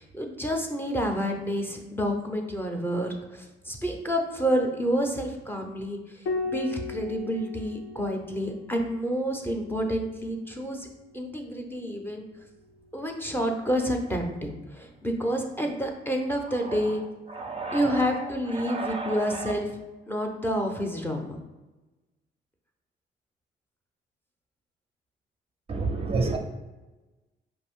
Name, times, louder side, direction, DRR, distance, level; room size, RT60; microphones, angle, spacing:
voice 1, 0.0-10.9 11.1-12.3 12.9-17.0 17.7-19.6 20.1-21.3, equal, 10° left, 2 dB, 0.6 m, -29 dB
Piano, 6.3-11.1 12.7-13.6, left 3 dB, 70° left, 0.6 m, -38 dB
voice 2, 16.5-19.5 25.7-26.4, right 3 dB, 30° right, 4 dB, 0.5 m, -32 dB
4.8 x 2.6 x 3.6 m, 1.1 s
cardioid pair, 90°, 20 cm